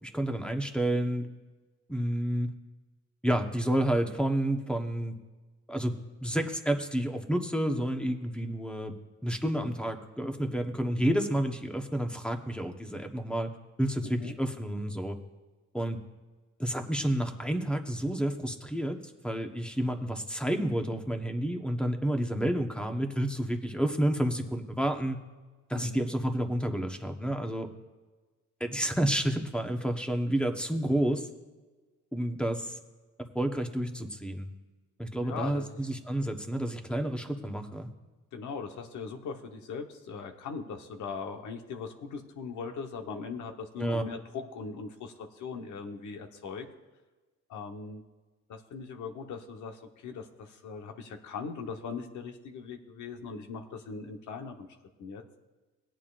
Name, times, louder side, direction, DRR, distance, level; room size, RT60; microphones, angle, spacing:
voice 1, 0.0-1.3 1.9-2.5 3.2-5.1 5.7-6.0 6.2-8.9 9.2-13.5 13.8-15.2 15.7-16.0 16.6-25.2 25.7-27.7 28.6-31.3 32.1-32.8 33.3-34.5 35.0-37.9 43.8-44.0, right 1 dB, 5° left, 5 dB, 1.1 m, -30 dB
voice 2, 14.0-14.4 25.7-26.1 35.2-35.8 38.3-46.7 47.5-48.0 48.5-54.7 55.0-55.2, left 5 dB, 75° left, 4 dB, 1.2 m, -40 dB
18.0 x 9.0 x 2.5 m, 1.3 s
cardioid pair, 90°, 30 cm